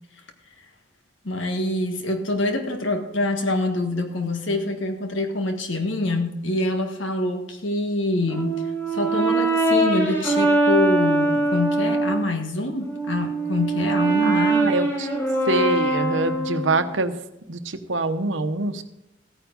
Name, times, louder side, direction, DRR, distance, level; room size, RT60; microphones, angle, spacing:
voice 1, 1.2-8.7 8.9-14.7, left 2 dB, 80° left, 5 dB, 1.6 m, -25 dB
Brass instrument, 8.3-12.3 12.8-16.9, right 2 dB, 15° left, 2.5 m, -22 dB
voice 2, 14.2-15.1 15.5-17.1 17.5-18.8, right 3 dB, 75° right, 9 dB, 0.9 m, -25 dB
15.0 x 9.3 x 3.9 m, 0.91 s
head